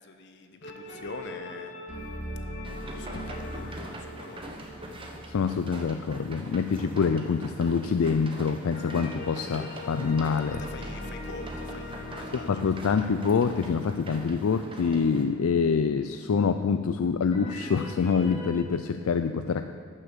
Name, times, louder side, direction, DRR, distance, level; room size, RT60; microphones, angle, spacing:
voice 1, 0.0-1.7 2.8-4.5 9.4-9.5 10.5-12.6 12.9-13.1, left 3 dB, 55° left, 7 dB, 0.9 m, -45 dB
sound 1, 0.6-6.3 8.7-14.7 17.3-18.6, left 1 dB, 35° left, 2.4 m, -40 dB
sound 2, 2.6-15.3, right 1 dB, 25° right, 1.0 m, -43 dB
voice 2, 5.3-10.6 12.5-19.7, left 5 dB, 75° left, 9 dB, 0.4 m, -26 dB
12.0 x 6.8 x 7.3 m, 2.3 s
head